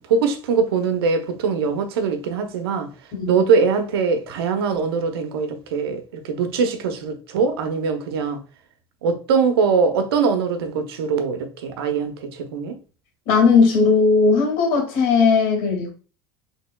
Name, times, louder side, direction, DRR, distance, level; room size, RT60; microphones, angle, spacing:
voice 1, 0.1-2.9 3.3-8.4 9.0-12.8, right 5 dB, 85° right, 0.7 m, -22 dB
voice 2, 3.1-3.4 13.3-15.9, left 4 dB, 70° left, 2.0 m, -17 dB
4.3 x 3.3 x 2.2 m
hypercardioid pair, 90°, 13 cm